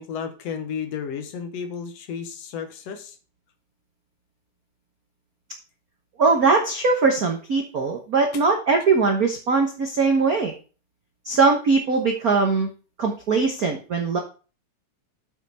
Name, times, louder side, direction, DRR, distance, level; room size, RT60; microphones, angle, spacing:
voice 1, 0.0-3.2, left 7 dB, 65° left, 8 dB, 2.1 m, -33 dB
voice 2, 6.2-10.5 11.2-12.7 13.0-14.2, right 4 dB, 65° right, 3 dB, 0.9 m, -21 dB
8.0 x 6.4 x 4.1 m, 0.35 s
omnidirectional pair, 3.3 m